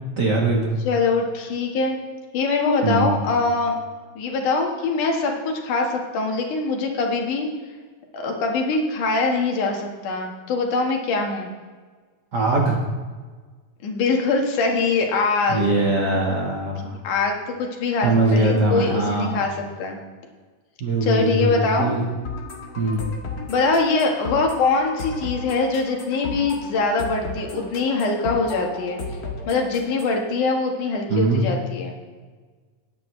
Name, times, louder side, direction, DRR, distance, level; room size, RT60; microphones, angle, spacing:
voice 1, 0.2-0.8 2.8-3.1 12.3-12.8 15.5-16.9 18.0-19.5 20.8-22.0 22.8-23.0 31.1-31.5, right 2 dB, 45° right, -1 dB, 1.5 m, -21 dB
voice 2, 0.9-2.0 2.3-3.8 4.2-7.5 8.1-11.5 13.8-15.7 17.0-19.5 19.8-20.0 21.0-21.9 23.5-29.0 29.5-31.9, left 3 dB, 90° left, 1 dB, 3.1 m, -23 dB
sound 1, 22.2-30.2, left 3 dB, 40° left, 1.6 m, -34 dB
20.0 x 9.2 x 3.2 m, 1.5 s
omnidirectional pair, 3.5 m